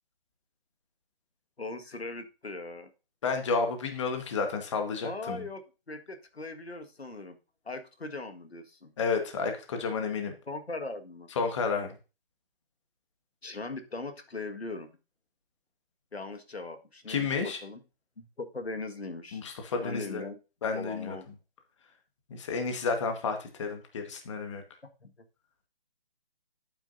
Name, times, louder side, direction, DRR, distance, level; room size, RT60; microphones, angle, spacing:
voice 1, 1.6-2.9 5.0-7.4 7.7-8.9 10.5-11.3 13.4-14.9 16.1-17.8 18.2-19.4 19.8-20.4 20.7-21.3 25.0-25.1, left 3 dB, 90° left, 7 dB, 1.8 m, -39 dB
voice 2, 3.2-5.5 9.0-10.3 11.4-11.9 17.1-17.6 19.3-20.2 20.6-21.2 22.3-24.6, left 4 dB, 30° left, 5 dB, 1.5 m, -31 dB
11.0 x 8.8 x 2.7 m, 0.31 s
figure-of-eight pair, 155°, 30 cm